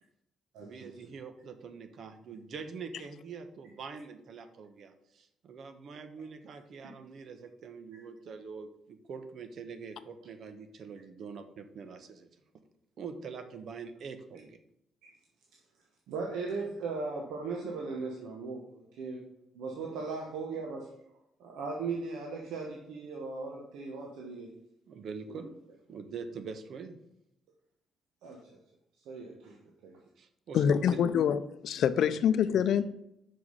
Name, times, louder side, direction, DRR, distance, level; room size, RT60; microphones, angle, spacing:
voice 1, 0.6-12.3 13.0-14.6 24.9-25.5 25.9-27.0 30.2-30.6 30.9-31.0, right 5 dB, 65° right, 1.0 m, -44 dB
voice 2, 16.1-19.2 19.5-20.8 21.4-24.5 25.3-25.4 28.2-28.5 29.0-30.0, right 4 dB, 90° right, 1.1 m, -38 dB
voice 3, 30.5-32.9, left 8 dB, 70° left, 0.5 m, -26 dB
6.0 x 5.0 x 5.4 m
cardioid pair, 90°, 0 cm